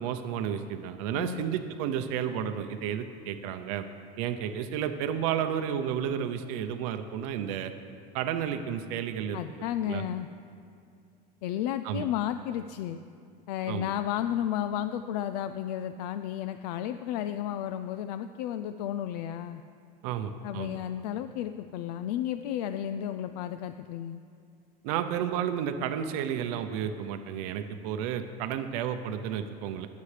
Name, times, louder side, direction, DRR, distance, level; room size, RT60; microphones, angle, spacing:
voice 1, 0.0-3.8 4.2-7.7 8.1-9.4 9.8-10.0 11.8-12.0 13.7-13.9 20.0-20.8 24.8-29.9, right 9 dB, 60° right, 8 dB, 0.6 m, -32 dB
voice 2, 1.1-1.4 9.3-10.3 11.4-13.0 13.5-19.6 20.4-24.2, left 11 dB, 80° left, 11 dB, 0.4 m, -33 dB
21.0 x 8.4 x 3.3 m, 2.4 s
cardioid pair, 175°, 20 cm